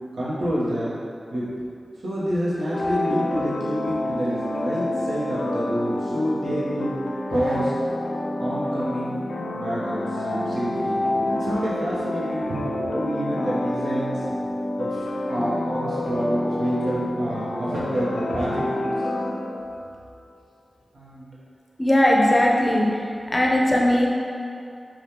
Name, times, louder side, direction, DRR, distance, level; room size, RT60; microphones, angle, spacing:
voice 1, 0.1-0.9 1.3-1.5 2.0-6.9 7.3-7.8 8.4-9.2 9.5-14.3 14.8-19.1 20.9-21.3, equal, 85° right, -8 dB, 0.9 m, -28 dB
sound 1, 2.7-20.0, left 1 dB, 80° left, 0.4 m, -28 dB
voice 2, 21.8-22.9 23.3-24.1, left 1 dB, 30° left, -2 dB, 0.6 m, -18 dB
5.0 x 2.4 x 2.9 m, 2.5 s
cardioid pair, 40°, 0 cm